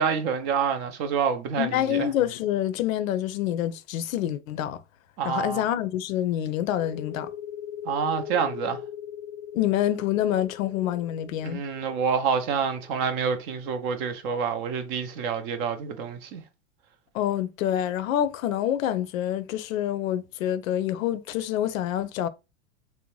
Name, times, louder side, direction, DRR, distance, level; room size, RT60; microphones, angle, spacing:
voice 1, 0.0-2.1 5.2-5.6 7.9-8.8 11.4-16.4, right 6 dB, 35° right, 0.5 m, -27 dB
voice 2, 1.6-4.8 5.2-7.3 9.5-11.6 17.1-22.3, left 11 dB, 80° left, 0.5 m, -27 dB
sound 1, 6.6-13.9, left 9 dB, 30° left, 0.5 m, -40 dB
2.6 x 2.1 x 3.0 m
supercardioid pair, 130°, 40 cm